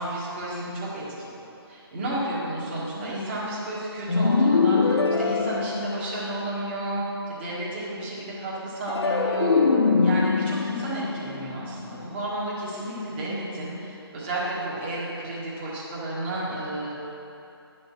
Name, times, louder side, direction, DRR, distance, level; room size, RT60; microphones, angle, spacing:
voice 1, 0.0-7.0 7.3-9.6 10.0-16.9, right 1 dB, 25° right, -8 dB, 1.7 m, -32 dB
sound 1, 4.1-6.5 8.9-12.2, left 4 dB, 85° left, 1.2 m, -23 dB
11.0 x 5.2 x 7.4 m, 2.8 s
hypercardioid pair, 170°, 14 cm